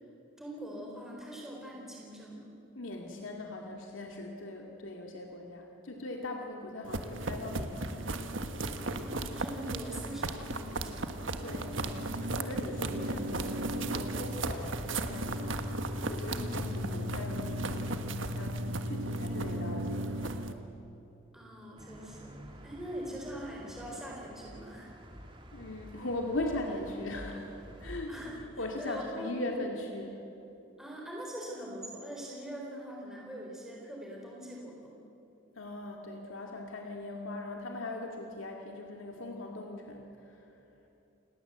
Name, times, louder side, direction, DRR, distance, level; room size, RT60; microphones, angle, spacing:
voice 1, 0.4-2.5 9.0-11.2 21.3-22.3 22.6-24.9 28.1-29.6 30.8-35.0, equal, ahead, -3 dB, 4.0 m, -43 dB
voice 2, 2.8-8.2 11.4-15.6 16.0-20.4 25.5-28.1 28.6-30.2 35.6-40.5, left 2 dB, 80° left, 1 dB, 2.4 m, -40 dB
sound 1, 6.8-20.5, right 1 dB, 70° right, 1.5 m, -35 dB
sound 2, 21.8-28.4, equal, 25° right, 2.3 m, -50 dB
29.0 x 19.0 x 8.0 m, 2.9 s
head